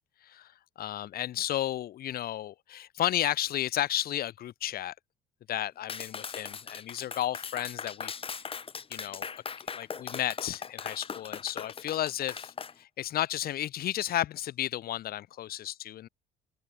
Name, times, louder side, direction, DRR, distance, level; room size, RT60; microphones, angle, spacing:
voice 1, 0.8-4.9 5.5-8.1 8.9-9.3 9.7-16.1, left 12 dB, 65° left, 2.4 m, -33 dB
Clapping, 5.9-12.7, left 6 dB, 35° left, 3.5 m, -39 dB
cardioid pair, 110°, 17 cm